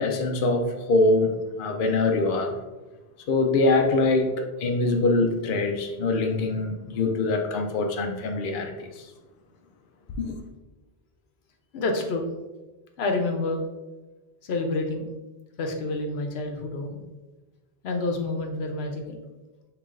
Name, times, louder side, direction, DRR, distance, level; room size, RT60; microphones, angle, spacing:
voice 1, 0.0-2.6 3.3-9.1 10.2-10.4, left 2 dB, 60° left, 0.7 m, -24 dB
voice 2, 11.7-12.2 13.0-13.6 14.4-15.1 15.6-17.0 17.8-19.2, left 2 dB, 85° left, 0.9 m, -28 dB
6.6 x 3.2 x 2.5 m
omnidirectional pair, 1.0 m